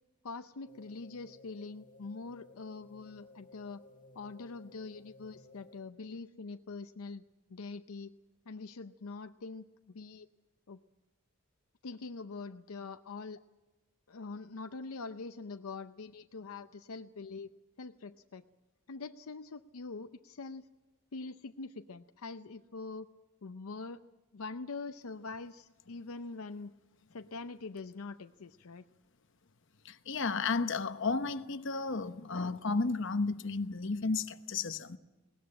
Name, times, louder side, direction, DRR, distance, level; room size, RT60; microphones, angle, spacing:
voice 1, 0.2-3.8 4.1-7.2 7.5-8.1 8.5-10.3 10.7-10.8 11.8-13.4 14.1-17.5 17.8-18.5 18.9-20.7 21.1-23.1 23.4-24.0 24.3-26.7 27.1-28.8, left 3 dB, 80° left, 0.6 m, -44 dB
sound 1, 0.7-6.1, left 2 dB, 35° left, 2.0 m, -58 dB
voice 2, 29.8-35.0, left 4 dB, 55° left, 0.9 m, -33 dB
20.0 x 18.5 x 8.7 m
head